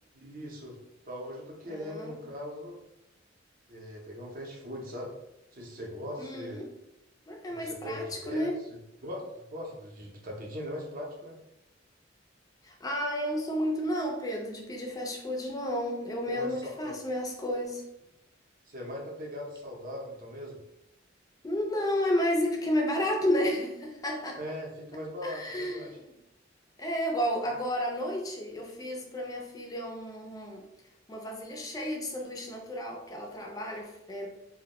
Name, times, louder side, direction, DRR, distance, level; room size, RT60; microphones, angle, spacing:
voice 1, 0.1-0.8 1.1-2.8 3.7-5.1 5.5-6.7 7.5-8.5 9.0-11.4 16.3-16.9 18.7-20.6 24.3-26.0 27.5-27.6, equal, 45° right, -1 dB, 0.6 m, -40 dB
voice 2, 1.7-2.1 6.2-6.7 7.3-8.5 12.6-17.8 21.4-24.4 25.2-26.0 26.8-30.6 31.1-34.3, equal, 20° left, 0 dB, 0.4 m, -32 dB
2.2 x 2.0 x 2.8 m, 0.88 s
head